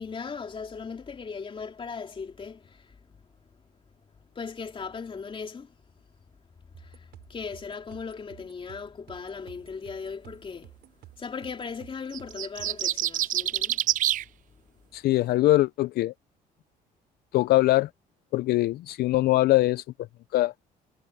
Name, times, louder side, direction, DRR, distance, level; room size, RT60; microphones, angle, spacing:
voice 1, 0.0-3.2 4.3-5.7 6.8-10.7 11.2-13.8, left 5 dB, 30° left, 3.4 m, -38 dB
sound 1, 6.7-12.9, right 15 dB, 80° right, 7.8 m, -53 dB
sound 2, 12.1-14.2, right 12 dB, 50° right, 0.4 m, -26 dB
voice 2, 14.9-16.1 17.3-17.9 18.3-19.8 20.3-20.5, left 17 dB, 70° left, 0.5 m, -22 dB
cardioid pair, 110°, 17 cm